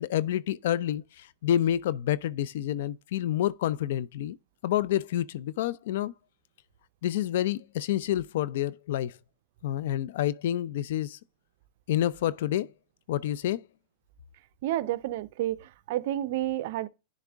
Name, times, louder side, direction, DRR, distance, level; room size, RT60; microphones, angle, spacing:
voice 1, 0.0-4.4 4.6-6.1 7.0-9.1 9.6-11.2 11.9-12.7 13.1-13.6, left 12 dB, 70° left, 0.5 m, -28 dB
voice 2, 14.6-16.9, right 13 dB, 60° right, 0.6 m, -30 dB
10.5 x 3.6 x 3.5 m
supercardioid pair, 145°, 0 cm